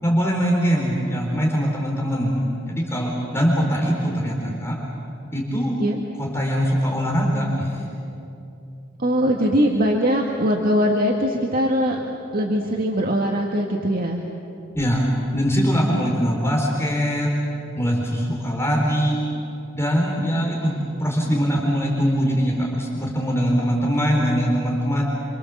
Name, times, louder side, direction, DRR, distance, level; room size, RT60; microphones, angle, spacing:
voice 1, 0.0-4.7 5.3-5.7 6.2-7.8 14.8-17.3 17.7-19.2 19.7-20.7 21.0-25.0, equal, 15° left, -2 dB, 4.1 m, -22 dB
voice 2, 9.0-12.0 12.3-14.2, equal, 45° right, 0 dB, 1.9 m, -21 dB
28.5 x 25.5 x 7.4 m, 2.7 s
head